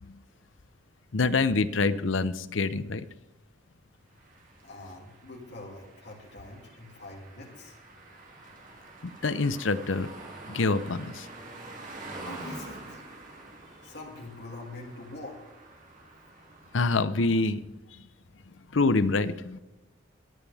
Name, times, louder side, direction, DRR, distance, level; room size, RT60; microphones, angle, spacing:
voice 1, 1.1-3.1 9.2-10.1 10.5-11.3 16.7-17.6 18.7-19.6, left 3 dB, 85° left, 13 dB, 0.8 m, -26 dB
sound 1, 4.1-17.1, right 2 dB, 45° right, 2.7 m, -46 dB
voice 2, 4.6-7.8 12.2-13.0 13.8-15.4, left 2 dB, 60° left, -1 dB, 2.8 m, -44 dB
22.5 x 9.1 x 3.5 m, 1.0 s
head